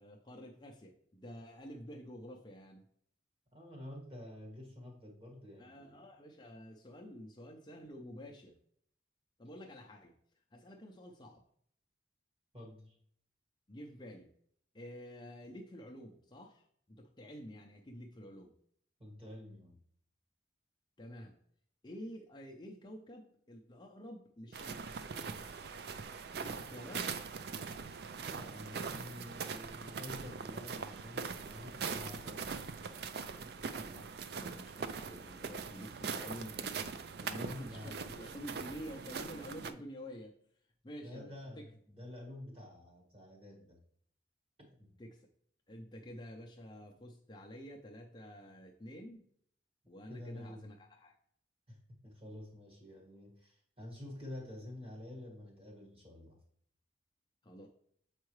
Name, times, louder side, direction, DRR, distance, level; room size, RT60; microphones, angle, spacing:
voice 1, 0.0-2.8 5.6-8.6 9.4-10.1 10.5-11.4 13.7-14.3 14.7-18.5 21.0-21.4 21.8-25.0 26.3-27.1 33.7-36.9 37.2-40.4 40.8-41.7 45.0-45.3 45.7-49.2 49.9-51.2 57.4-57.7, equal, 25° left, 0 dB, 0.5 m, -49 dB
voice 2, 3.5-6.1 12.5-13.0 19.0-19.8 28.2-32.5 37.3-38.0 41.0-43.8 44.6-45.0 50.1-50.7 51.7-56.4, left 1 dB, 30° right, -1 dB, 1.7 m, -49 dB
sound 1, 24.5-39.7, right 5 dB, 55° right, 0.4 m, -42 dB
7.3 x 4.6 x 3.1 m, 0.65 s
head